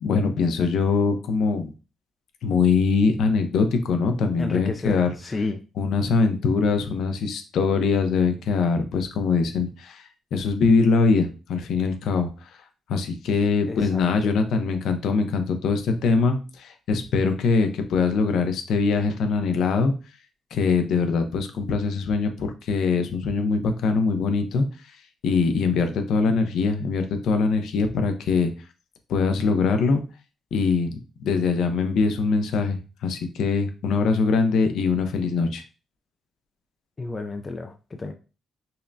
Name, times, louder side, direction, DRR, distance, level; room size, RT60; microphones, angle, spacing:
voice 1, 0.0-1.7 2.4-5.1 5.8-12.3 12.9-19.9 20.5-24.7 25.2-28.5 29.1-30.0 30.5-35.6, left 4 dB, 75° left, 7 dB, 0.6 m, -22 dB
voice 2, 4.4-5.6 13.7-14.3 37.0-38.1, left 3 dB, 30° left, 5 dB, 0.4 m, -31 dB
5.4 x 2.1 x 2.6 m, 0.33 s
cardioid pair, 90°, 0 cm